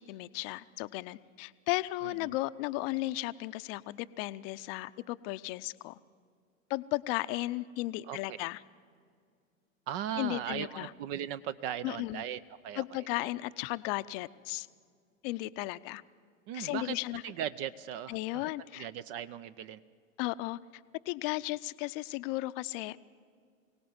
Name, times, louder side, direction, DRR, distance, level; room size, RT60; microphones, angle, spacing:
voice 1, 0.0-6.0 6.7-8.6 10.2-10.9 11.8-12.2 12.8-14.7 15.2-16.0 16.5-17.2 18.1-18.9 20.2-20.6 21.1-23.2, left 19 dB, 45° left, 14 dB, 0.7 m, -35 dB
voice 2, 2.0-2.3 8.1-8.4 9.9-13.0 16.5-17.0 17.2-18.2 18.7-19.8, right 10 dB, 45° right, 14 dB, 0.7 m, -38 dB
23.5 x 17.5 x 9.5 m, 2.2 s
hypercardioid pair, 95°, 40 cm